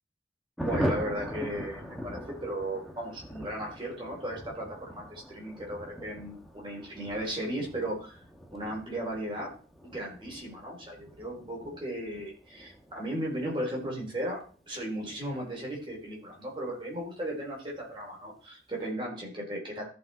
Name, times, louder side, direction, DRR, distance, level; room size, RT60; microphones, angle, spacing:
Thunder, 0.6-16.7 17.0-17.1 17.4-17.5 17.8-18.2, equal, ahead, 1.4 m, -41 dB
voice 1, 0.6-8.2 8.5-9.5 9.8-14.4 14.7-19.9, right 1 dB, 30° right, -2 dB, 4.0 m, -36 dB
14.0 x 5.4 x 4.4 m, 0.39 s
head